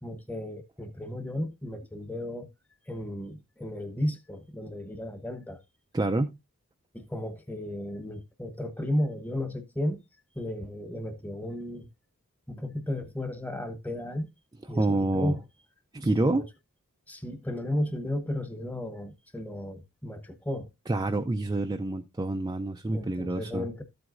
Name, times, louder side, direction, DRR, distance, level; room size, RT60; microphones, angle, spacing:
voice 1, 0.0-2.5 2.9-5.6 6.9-10.0 10.3-11.9 12.5-14.3 14.7-15.4 16.0-16.5 17.1-20.7 22.9-23.8, left 1 dB, 5° left, 1.0 m, -34 dB
voice 2, 5.9-6.3 14.7-15.3 15.9-16.4 20.9-23.7, right 2 dB, 15° right, 0.4 m, -27 dB
13.0 x 7.8 x 2.5 m
head